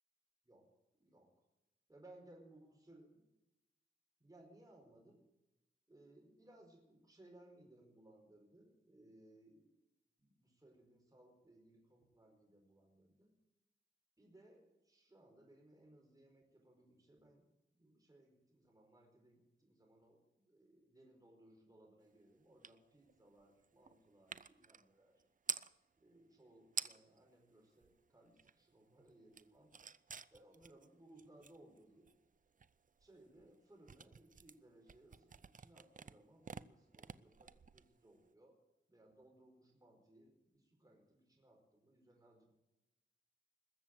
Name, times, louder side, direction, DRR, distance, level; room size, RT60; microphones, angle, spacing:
voice 1, 1.9-3.2 4.2-5.2 5.9-9.7 10.2-13.3 14.2-17.4 17.7-20.2 20.5-25.1 26.0-29.7 30.3-32.1 33.0-38.5 38.9-42.5, right 1 dB, 20° right, 0 dB, 4.7 m, -64 dB
sound 1, 22.6-22.8 23.1-25.7 26.4-26.5 26.7-27.2 27.6-28.7 29.0-38.3, right 6 dB, 45° right, 0.6 m, -49 dB
21.0 x 7.4 x 9.1 m, 0.94 s
wide cardioid pair, 95°, 19 cm